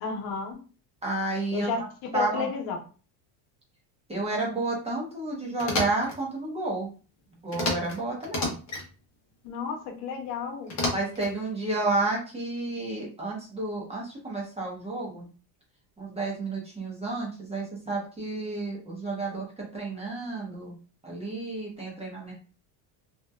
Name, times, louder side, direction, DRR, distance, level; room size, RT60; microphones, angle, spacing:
voice 1, 0.0-0.6 1.5-2.8 9.4-10.7, left 5 dB, 75° left, 2 dB, 0.8 m, -32 dB
voice 2, 1.0-1.9 2.1-2.5 4.1-6.9 7.4-8.6 10.9-15.3 16.0-20.8 21.0-22.3, right 2 dB, 15° right, -3 dB, 0.6 m, -31 dB
sound 1, 5.6-6.2 7.5-8.0 8.2-8.9 10.7-11.3, left 2 dB, 35° left, 0.7 m, -30 dB
2.8 x 2.1 x 2.2 m, 0.37 s
cardioid pair, 135°, 48 cm